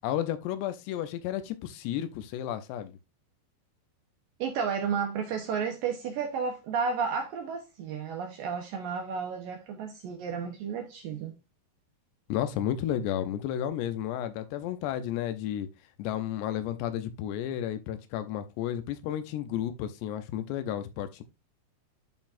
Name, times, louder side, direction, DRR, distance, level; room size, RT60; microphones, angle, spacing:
voice 1, 0.0-3.0 12.3-15.7 16.0-21.2, left 11 dB, 80° left, 2.8 m, -32 dB
voice 2, 4.4-11.3, right 6 dB, 75° right, 2.2 m, -32 dB
11.5 x 4.0 x 2.5 m
omnidirectional pair, 5.0 m